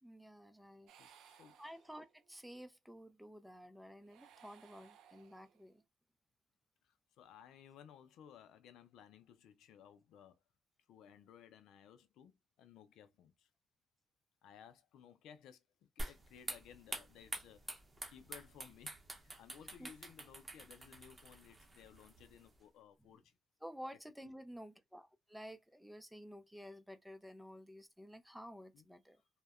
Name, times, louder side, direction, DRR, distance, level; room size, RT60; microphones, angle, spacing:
voice 1, 0.0-0.9 1.6-5.8 19.8-19.9 23.6-29.2, equal, 5° right, 0.5 m, -52 dB
sound 1, 0.9-2.3 4.0-5.8, right 8 dB, 85° right, 0.4 m, -63 dB
voice 2, 1.0-1.6 6.8-10.4 10.9-13.5 14.4-17.8 18.1-23.4 24.2-24.3 28.7-28.9, left 9 dB, 85° left, 0.4 m, -59 dB
sound 2, 16.0-22.6, right 2 dB, 25° right, 0.8 m, -48 dB
2.6 x 2.1 x 2.4 m
cardioid pair, 90°, 0 cm